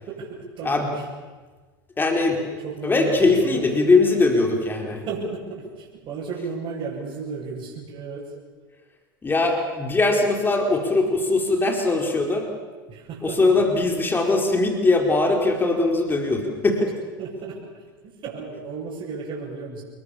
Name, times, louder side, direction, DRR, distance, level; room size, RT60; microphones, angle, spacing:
voice 1, 0.1-1.1 2.3-3.6 5.1-8.3 12.9-13.4 17.2-19.8, right 4 dB, 40° right, -7 dB, 7.9 m, -34 dB
voice 2, 2.0-2.4 2.8-5.0 9.2-12.5 13.2-16.9, left 3 dB, 15° left, 3 dB, 4.5 m, -21 dB
28.0 x 22.0 x 7.0 m, 1.4 s
hypercardioid pair, 100°, 12 cm